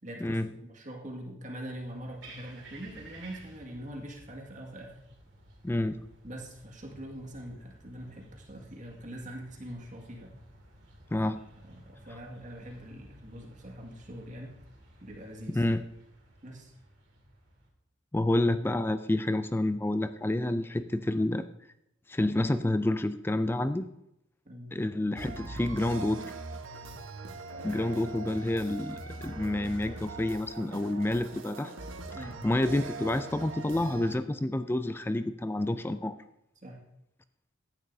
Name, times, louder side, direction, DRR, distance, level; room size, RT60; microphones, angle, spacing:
voice 1, 0.0-0.4 0.7-5.0 6.2-10.3 11.6-14.5 15.0-15.6 16.4-16.7 24.5-24.7 32.1-32.4 36.6-36.8, equal, 40° right, 0 dB, 2.0 m, -43 dB
sound 1, 1.7-17.7, right 2 dB, 70° right, 2.8 m, -54 dB
voice 2, 5.6-6.0 11.1-11.4 15.5-15.8 18.1-21.4 22.1-23.9 24.7-26.3 27.6-31.7 32.4-36.1, left 1 dB, 10° left, 11 dB, 0.3 m, -29 dB
sound 2, 25.2-34.1, right 3 dB, 90° right, 1.2 m, -41 dB
15.5 x 10.5 x 2.7 m, 0.81 s
head